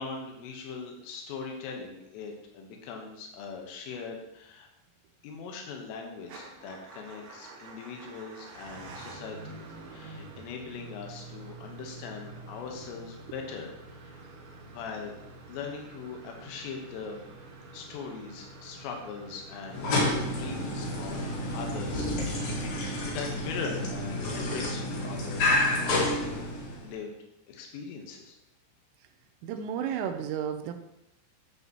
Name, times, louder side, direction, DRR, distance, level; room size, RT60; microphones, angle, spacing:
voice 1, 0.0-4.7 5.2-14.2 14.6-15.2 15.5-17.2 17.7-22.5 23.0-26.1 26.8-27.1 27.5-28.4, left 5 dB, 85° left, 1 dB, 3.8 m, -41 dB
Motor vehicle (road) / Engine starting / Idling, 6.2-23.2, right 3 dB, 70° right, 2.4 m, -47 dB
sound 1, 19.7-26.9, left 1 dB, 55° left, 2.9 m, -29 dB
voice 2, 29.4-30.7, right 8 dB, 85° right, 7 dB, 3.3 m, -32 dB
10.5 x 8.0 x 3.0 m, 0.83 s
omnidirectional pair, 5.7 m